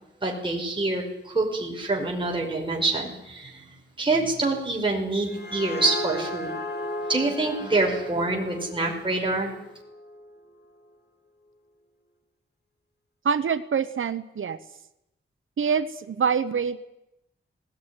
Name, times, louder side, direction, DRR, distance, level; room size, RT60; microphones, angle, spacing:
voice 1, 0.2-3.7 4.0-6.5 7.1-9.5, right 2 dB, 25° right, -1 dB, 5.5 m, -26 dB
sound 1, 5.0-10.5, left 1 dB, 55° left, 2.7 m, -36 dB
voice 2, 13.2-14.6 15.6-16.8, right 6 dB, 75° right, 11 dB, 1.1 m, -25 dB
19.0 x 19.0 x 9.9 m, 0.86 s
wide cardioid pair, 100°, 21 cm